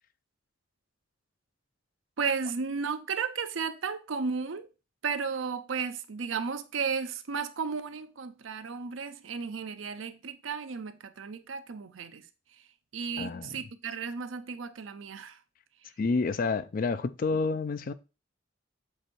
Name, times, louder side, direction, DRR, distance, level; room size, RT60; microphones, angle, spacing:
voice 1, 2.2-4.7 5.0-12.2 12.9-15.4, right 5 dB, 80° right, 0.6 m, -34 dB
voice 2, 13.2-13.6 16.0-17.9, left 4 dB, 45° left, 0.4 m, -29 dB
7.9 x 2.7 x 4.3 m
head